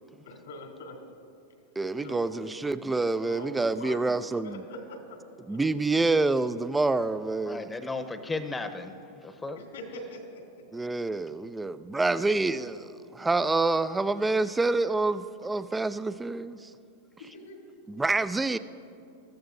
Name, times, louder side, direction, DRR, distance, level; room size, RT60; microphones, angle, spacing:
voice 1, 0.2-1.0 1.9-2.6 3.1-5.2 5.5-5.6 9.5-10.4 17.2-17.6, left 1 dB, 85° left, 1 dB, 2.8 m, -43 dB
voice 2, 1.8-4.6 5.5-7.7 10.7-16.7 17.9-18.6, right 3 dB, 10° right, 14 dB, 0.4 m, -27 dB
voice 3, 7.4-8.9 9.2-9.6, left 3 dB, 10° left, 8 dB, 0.9 m, -35 dB
21.5 x 14.0 x 2.7 m, 2.6 s
hypercardioid pair, 115°, 0 cm